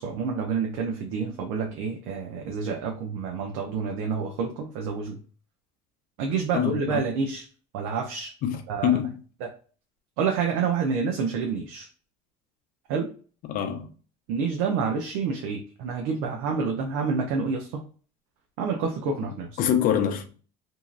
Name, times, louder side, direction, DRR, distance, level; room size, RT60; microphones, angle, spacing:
voice 1, 0.0-5.2 6.2-7.4 7.7-8.3 8.7-8.9 9.4-9.5 10.2-11.9 12.9-13.1 14.3-17.8 18.6-19.5, right 5 dB, 85° right, 0.6 m, -28 dB
voice 2, 6.5-7.0 8.4-9.2 13.4-13.9 19.6-20.4, left 9 dB, 50° left, 0.6 m, -25 dB
2.9 x 2.7 x 2.5 m
cardioid pair, 135°, 18 cm